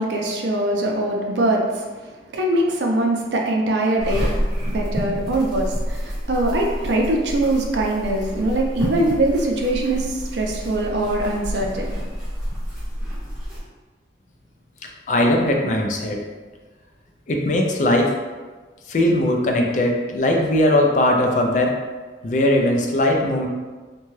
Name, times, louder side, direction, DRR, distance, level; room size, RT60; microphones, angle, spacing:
voice 1, 0.0-1.9 2.3-11.9, right 1 dB, 80° right, 0 dB, 0.5 m, -22 dB
sound 1, 4.0-13.6, equal, ahead, 1.4 m, -28 dB
voice 2, 15.1-16.2 17.3-18.1 18.9-21.7 22.2-23.5, left 1 dB, 45° left, 1 dB, 0.3 m, -19 dB
2.7 x 2.2 x 3.1 m, 1.4 s
head